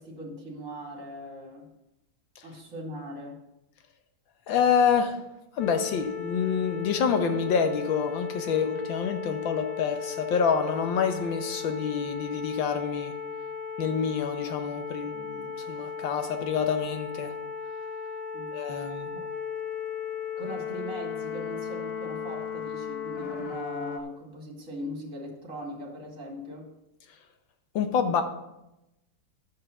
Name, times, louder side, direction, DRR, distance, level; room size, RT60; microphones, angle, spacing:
voice 1, 0.0-1.7 2.4-3.4 18.3-18.5 19.1-19.2 20.4-26.7, equal, 45° right, 0 dB, 2.6 m, -39 dB
voice 2, 4.5-5.2 5.6-13.1 13.8-17.3 18.5-19.1 27.8-28.2, left 6 dB, 80° left, 7 dB, 1.7 m, -27 dB
sound 1, 5.6-24.0, left 7 dB, 60° left, 1.4 m, -36 dB
11.0 x 5.5 x 7.0 m, 0.91 s
omnidirectional pair, 2.1 m